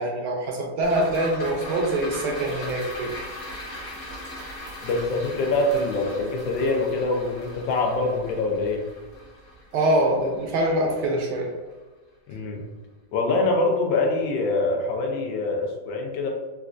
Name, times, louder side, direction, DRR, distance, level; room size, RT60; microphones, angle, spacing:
voice 1, 0.0-3.1 9.7-11.5, right 1 dB, 75° right, 0 dB, 1.1 m, -24 dB
sound 1, 0.8-11.3 11.7-11.8, left 1 dB, 55° left, 1.4 m, -39 dB
voice 2, 4.8-8.9 12.3-12.6 13.1-16.3, left 2 dB, 80° left, 1 dB, 1.3 m, -24 dB
4.1 x 2.4 x 2.4 m, 1.3 s
omnidirectional pair, 2.0 m